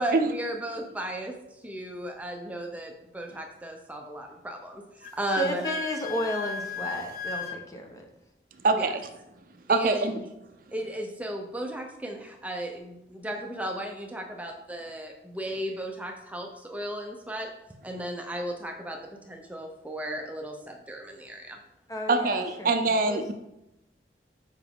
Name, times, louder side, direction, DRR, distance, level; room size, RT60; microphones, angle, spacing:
voice 1, 0.0-5.7 8.7-8.8 9.7-10.3 10.7-17.5 17.8-21.6, right 1 dB, 10° right, 2 dB, 0.6 m, -35 dB
Wind instrument woodwind instrument, 5.0-7.6, left 5 dB, 55° left, 0.6 m, -35 dB
voice 2, 5.4-8.1 21.9-22.7 23.1-23.2, equal, 20° left, 2 dB, 0.9 m, -32 dB
voice 3, 9.7-10.1 22.1-23.3, right 3 dB, 50° right, 7 dB, 0.5 m, -24 dB
7.2 x 4.8 x 3.6 m, 0.88 s
head